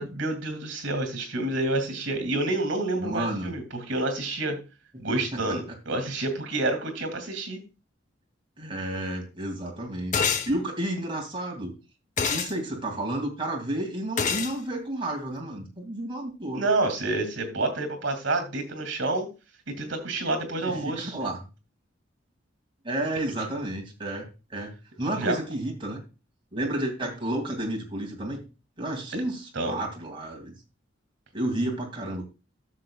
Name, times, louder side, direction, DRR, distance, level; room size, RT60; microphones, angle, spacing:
voice 1, 0.0-4.6 5.0-7.6 16.5-19.3 19.8-21.2 25.2-25.4 29.5-29.8, right 2 dB, 70° right, 8 dB, 2.4 m, -28 dB
voice 2, 3.0-3.5 4.9-5.0 5.3-5.6 8.6-11.7 12.3-16.6 20.6-21.4 22.8-24.2 24.5-24.7 25.0-26.0 26.5-28.4 28.8-30.5 31.3-32.2, right 1 dB, 25° right, 1 dB, 2.4 m, -31 dB
sound 1, 10.1-10.5 12.2-12.5 14.2-14.5, left 6 dB, 40° left, 0.8 m, -25 dB
13.5 x 6.7 x 2.3 m, 0.30 s
head